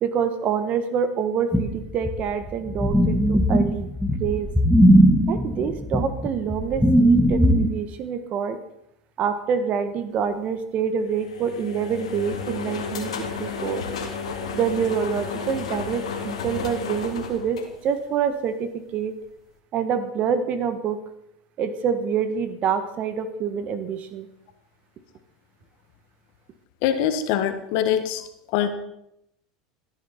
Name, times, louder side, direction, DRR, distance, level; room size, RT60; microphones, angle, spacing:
voice 1, 0.0-3.9 4.2-4.5 5.3-8.6 9.2-13.1 13.4-13.8 14.5-19.1 19.7-21.0 21.6-24.3, right 7 dB, 45° right, 10 dB, 1.4 m, -26 dB
sound 1, 1.5-7.7, equal, ahead, 1.6 m, -18 dB
sound 2, 11.0-18.3, left 5 dB, 85° left, 2.0 m, -32 dB
voice 2, 26.8-28.2 28.5-28.7, left 10 dB, 65° left, 9 dB, 1.4 m, -23 dB
14.5 x 10.0 x 4.3 m, 0.80 s
hypercardioid pair, 90°, 3 cm